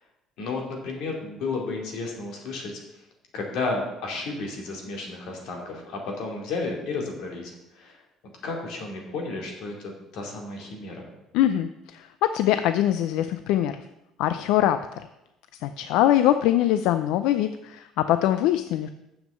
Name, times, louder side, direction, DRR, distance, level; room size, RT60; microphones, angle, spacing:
voice 1, 0.4-2.8 3.3-8.0 8.4-11.1, left 3 dB, 60° left, 0 dB, 2.5 m, -32 dB
voice 2, 11.3-13.8 14.2-15.0 15.6-18.9, left 12 dB, 80° left, 11 dB, 0.4 m, -23 dB
7.3 x 6.2 x 7.7 m, 0.90 s
cardioid pair, 175°, 0 cm